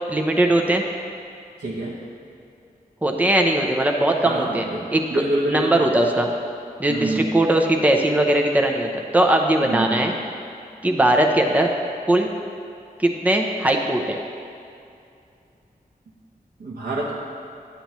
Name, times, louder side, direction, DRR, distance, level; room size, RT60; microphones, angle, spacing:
voice 1, 0.1-0.8 3.0-4.6 4.9-5.0 5.5-6.3 6.8-10.2 10.8-11.7 12.1-12.3 13.0-14.2, right 1 dB, 10° right, 2 dB, 0.6 m, -19 dB
voice 2, 1.6-1.9 4.2-5.9 6.9-7.3 9.6-10.0 16.6-17.1, right 1 dB, 85° right, -7 dB, 1.0 m, -26 dB
10.5 x 6.9 x 3.0 m, 2.5 s
wide cardioid pair, 65°, 16 cm